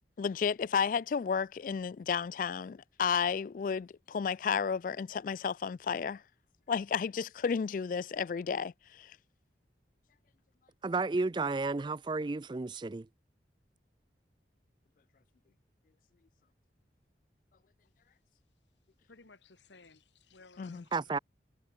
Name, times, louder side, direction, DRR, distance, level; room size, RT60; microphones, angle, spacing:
voice 1, 0.2-6.2 6.7-9.2 20.6-20.8, left 6 dB, 50° left, 0.3 m, -32 dB
voice 2, 10.8-13.1 20.9-21.2, right 3 dB, 25° right, 0.4 m, -32 dB
voice 3, 19.1-21.2, left 4 dB, 90° left, 1.9 m, -58 dB
head